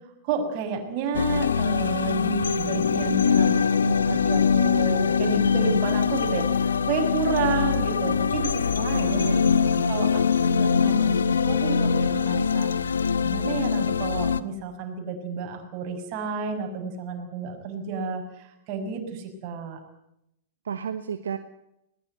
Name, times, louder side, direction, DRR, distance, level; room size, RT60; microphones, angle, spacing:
voice 1, 0.2-9.3 9.9-12.7 13.2-19.8, right 4 dB, 45° right, 4 dB, 6.6 m, -31 dB
sound 1, 1.1-14.4, left 6 dB, 80° left, 1.1 m, -23 dB
voice 2, 8.9-9.9 20.6-21.4, right 7 dB, 75° right, 9 dB, 1.4 m, -32 dB
21.0 x 20.0 x 9.3 m, 0.82 s
hypercardioid pair, 105°, 0 cm